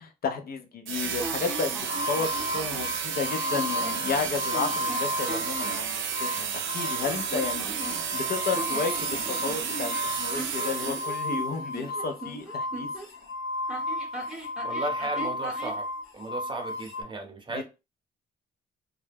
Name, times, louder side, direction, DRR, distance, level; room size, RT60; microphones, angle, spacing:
voice 1, 0.0-9.9 10.2-12.9 17.5-17.6, left 5 dB, 50° left, 0.5 m, -32 dB
sound 1, 0.9-11.4, right 7 dB, 75° right, 0.5 m, -32 dB
sound 2, 1.2-2.9 3.5-4.1 4.5-5.8 7.0-8.2 8.5-13.1 13.7-15.8, right 2 dB, 5° right, 0.9 m, -39 dB
sound 3, 1.8-5.8 6.1-17.0, left 2 dB, 90° left, 0.8 m, -34 dB
voice 2, 14.6-15.9 16.1-17.6, right 2 dB, 25° right, 0.7 m, -35 dB
2.2 x 2.0 x 3.3 m
cardioid pair, 90°, 20 cm